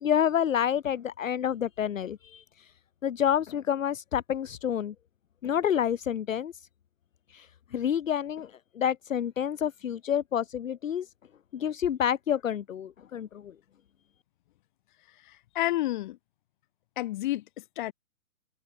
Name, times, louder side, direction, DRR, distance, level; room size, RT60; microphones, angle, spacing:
voice 1, 0.0-2.7 3.0-4.9 5.4-6.6 7.3-11.1 11.5-13.5, left 9 dB, 60° left, 1.2 m, -29 dB
voice 2, 15.3-16.2 17.0-17.9, left 16 dB, 35° left, 4.1 m, -30 dB
hypercardioid pair, 150°, 43 cm